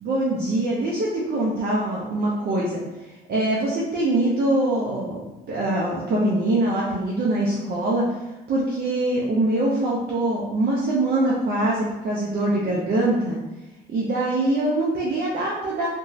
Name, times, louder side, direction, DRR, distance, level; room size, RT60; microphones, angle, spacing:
voice 1, 0.0-8.0 8.5-13.4 13.9-15.9, right 1 dB, 50° right, -5 dB, 0.5 m, -23 dB
2.8 x 2.2 x 2.7 m, 1.1 s
cardioid pair, 90°, 20 cm